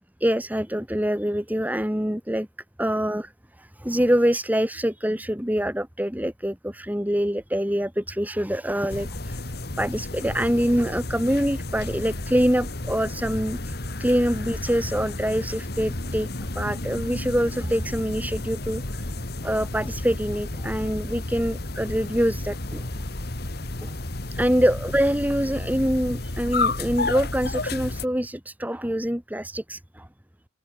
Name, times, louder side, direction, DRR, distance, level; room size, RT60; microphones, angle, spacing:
voice 1, 0.2-2.5 2.8-3.3 3.6-16.3 16.6-19.1 19.4-22.9 23.8-23.9 24.3-30.1, equal, 10° right, 2.4 m, -25 dB
sound 1, 8.9-28.1, left 2 dB, 55° left, 2.0 m, -32 dB
open air
head